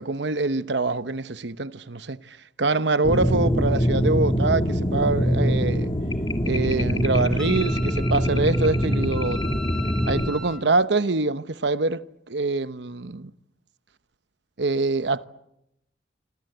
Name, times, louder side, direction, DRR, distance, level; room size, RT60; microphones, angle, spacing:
voice 1, 0.0-5.9 6.4-9.6 10.1-12.0 12.3-13.3 14.6-15.2, right 3 dB, 70° right, 1.0 m, -25 dB
sound 1, 3.0-10.3, equal, 25° left, 2.0 m, -23 dB
Wind instrument woodwind instrument, 7.4-10.6, left 1 dB, ahead, 3.3 m, -39 dB
26.5 x 26.0 x 8.0 m
head